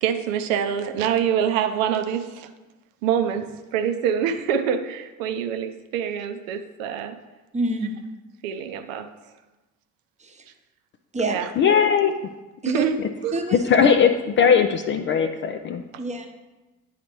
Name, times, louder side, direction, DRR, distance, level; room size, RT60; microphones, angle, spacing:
voice 1, 0.0-2.5 3.0-3.5 3.7-7.2 8.4-9.1 11.3-11.5 12.7-13.0 13.2-13.3, right 8 dB, 65° right, 7 dB, 0.6 m, -25 dB
voice 2, 7.5-8.0 10.2-10.5 11.1-11.4 12.6-12.9 13.3-14.0 16.0-16.3, right 2 dB, 15° right, 4 dB, 0.9 m, -27 dB
voice 3, 11.6-12.1 13.7-15.8, left 7 dB, 30° left, 7 dB, 0.3 m, -19 dB
10.0 x 4.0 x 3.0 m, 1.1 s
figure-of-eight pair, 50°, 43 cm